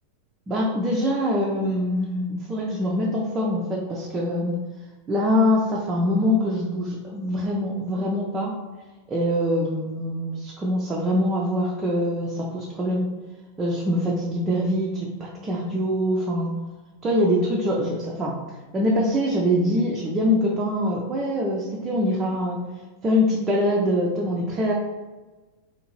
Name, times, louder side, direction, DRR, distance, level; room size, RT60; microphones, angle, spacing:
voice 1, 0.5-4.5 5.1-8.5 9.1-13.1 13.6-16.5 17.0-18.4 18.7-22.6 23.0-24.7, left 1 dB, 20° right, -3 dB, 0.4 m, -24 dB
2.7 x 2.5 x 2.9 m, 1.2 s
figure-of-eight pair, 90°, 0 cm